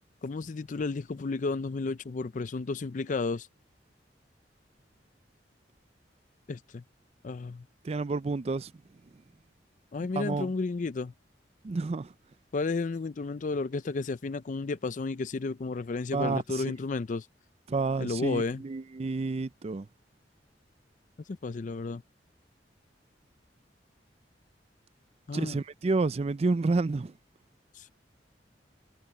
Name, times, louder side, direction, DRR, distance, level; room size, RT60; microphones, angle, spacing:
voice 1, 0.2-3.5 6.5-6.8 7.2-7.6 9.9-11.1 12.5-17.3 18.0-18.6 21.3-22.0 25.3-25.6 27.8-27.9, left 3 dB, 45° left, 0.4 m, -32 dB
voice 2, 7.8-8.7 10.2-10.5 11.6-12.1 16.1-16.6 17.7-19.9 25.3-27.1, right 3 dB, 35° right, 0.4 m, -29 dB
head